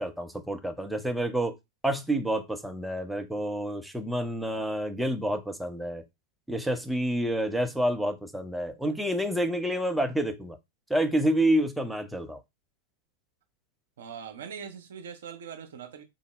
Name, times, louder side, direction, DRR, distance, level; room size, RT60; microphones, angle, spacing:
voice 1, 0.0-1.6 1.8-6.0 6.5-10.6 10.9-12.4, right 1 dB, 5° right, 0.5 m, -28 dB
voice 2, 14.0-16.0, right 7 dB, 60° right, 0.6 m, -41 dB
3.8 x 2.0 x 3.0 m
figure-of-eight pair, 90°, 0 cm